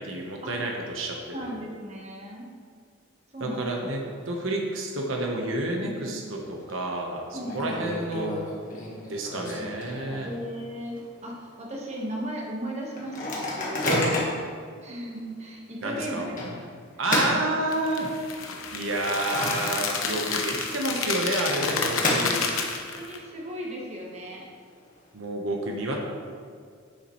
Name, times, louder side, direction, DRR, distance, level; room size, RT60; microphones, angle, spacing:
voice 1, 0.0-1.6 3.4-8.3 9.1-10.3 13.8-14.1 15.8-16.2 17.0-18.1 18.7-22.4 25.1-26.0, right 1 dB, 75° right, 0 dB, 1.1 m, -29 dB
voice 2, 1.3-2.5 3.3-3.9 5.8-6.2 7.3-7.8 10.2-14.2 14.8-16.4 22.9-24.5, equal, 35° right, -2 dB, 1.4 m, -36 dB
Microwave oven, 6.2-6.7 7.0-7.1 7.4-10.5 10.9-11.0 11.3-11.6 12.1-12.2 13.0-14.5 15.1-15.2 16.4-18.2 18.6-20.1 20.4-20.5 21.4-22.8, left 1 dB, 40° left, 1.5 m, -31 dB
sound 1, 17.7-23.2, left 5 dB, 85° left, 1.0 m, -30 dB
9.6 x 7.2 x 3.2 m, 2.1 s
head